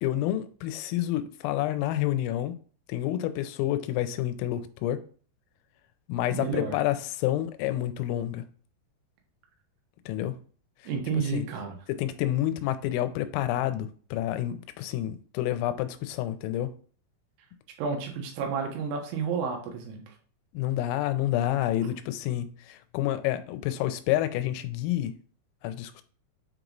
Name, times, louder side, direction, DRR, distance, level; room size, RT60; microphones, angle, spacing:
voice 1, 0.0-2.5 2.9-5.0 6.1-8.4 10.1-10.4 11.1-11.4 11.9-16.7 20.5-25.1 25.6-26.0, left 13 dB, 90° left, 3.3 m, -29 dB
voice 2, 6.3-6.8 10.9-11.8 17.8-20.0, right 5 dB, 90° right, 4.0 m, -31 dB
8.5 x 3.0 x 3.9 m
omnidirectional pair, 5.9 m